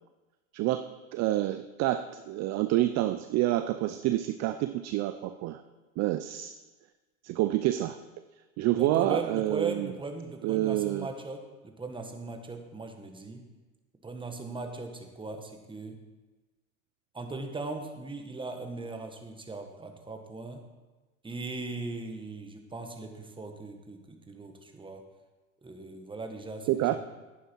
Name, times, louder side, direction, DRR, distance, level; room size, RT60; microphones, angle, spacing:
voice 1, 0.5-5.6 6.0-6.5 7.2-8.0 8.6-9.9 10.4-11.1 26.7-27.0, right 15 dB, 40° right, 10 dB, 0.5 m, -28 dB
voice 2, 8.7-13.5 14.0-16.0 17.1-20.6 21.2-25.0 25.6-27.1, right 3 dB, 10° right, 5 dB, 1.4 m, -39 dB
11.0 x 9.2 x 4.5 m, 1.2 s
hypercardioid pair, 100°, 41 cm